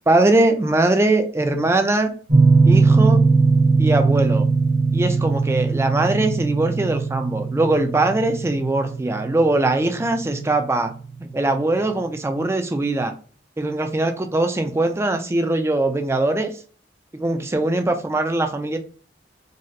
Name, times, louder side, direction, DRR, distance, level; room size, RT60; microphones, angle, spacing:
voice 1, 0.1-2.2 2.7-3.3 3.8-4.5 4.9-10.9 11.2-13.1 13.6-16.5 17.1-18.8, right 2 dB, 15° right, 6 dB, 0.3 m, -21 dB
sound 1, 2.3-11.0, right 4 dB, 45° right, 0.9 m, -19 dB
4.0 x 2.1 x 2.6 m, 0.40 s
head